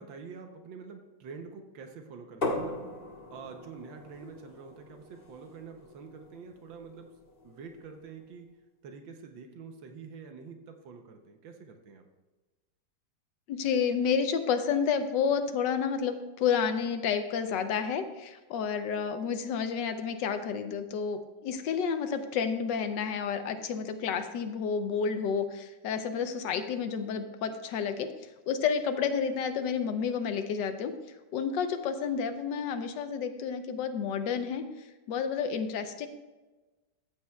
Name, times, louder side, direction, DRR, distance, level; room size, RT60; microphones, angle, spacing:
voice 1, 0.0-2.8 3.3-7.1 7.4-8.5 8.8-12.0, right 5 dB, 85° right, 5 dB, 1.5 m, -46 dB
sound 1, 2.4-8.1, left 2 dB, 35° left, 1.4 m, -40 dB
voice 2, 13.5-28.1 28.5-30.9 31.3-34.6 35.1-36.1, left 6 dB, 75° left, 9 dB, 1.3 m, -30 dB
14.0 x 8.5 x 2.3 m, 1.2 s
omnidirectional pair, 2.0 m